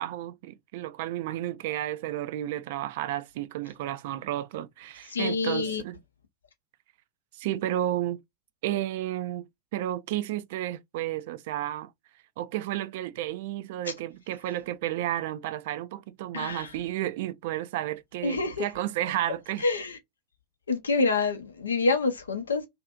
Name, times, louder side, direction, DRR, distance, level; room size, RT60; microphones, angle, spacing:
voice 1, 0.0-6.0 7.3-8.2 8.6-11.9 12.4-19.6, right 13 dB, 50° right, 0.3 m, -32 dB
voice 2, 5.1-5.8 13.8-13.9 16.3-16.7 18.2-18.7 19.6-20.0 20.7-22.7, left 3 dB, 70° left, 0.5 m, -27 dB
2.5 x 2.4 x 2.3 m
figure-of-eight pair, 90°, 0 cm